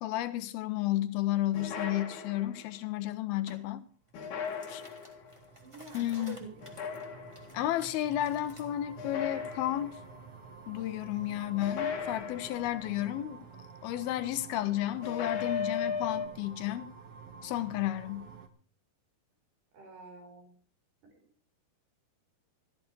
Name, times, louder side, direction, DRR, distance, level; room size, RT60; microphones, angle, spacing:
voice 1, 0.0-3.8 4.7-4.8 5.9-6.4 7.5-10.0 10.7-13.5 13.8-16.9 17.4-18.3, left 14 dB, 75° left, 2.7 m, -32 dB
sound 1, 1.5-2.8 4.1-5.3 6.6-7.6 9.0-10.1 11.6-12.9 15.0-16.3, left 6 dB, 60° left, 3.1 m, -37 dB
sound 2, 3.5-3.6 4.1-8.7, equal, 10° right, 2.0 m, -55 dB
sound 3, 4.1-18.5, right 5 dB, 55° right, 1.6 m, -50 dB
voice 2, 5.6-6.6 19.7-20.6 21.0-21.2, right 4 dB, 75° right, 6.8 m, -48 dB
14.5 x 13.5 x 4.7 m
omnidirectional pair, 4.6 m